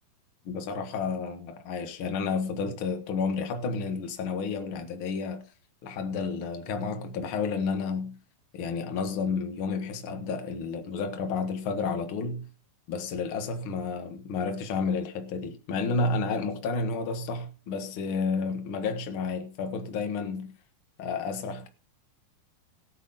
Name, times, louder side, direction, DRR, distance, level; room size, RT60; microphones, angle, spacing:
voice 1, 0.5-5.4 5.8-8.1 8.5-12.5 12.9-20.5 21.0-21.7, left 4 dB, 50° left, 1.8 m, -31 dB
17.5 x 8.4 x 3.9 m
omnidirectional pair, 4.0 m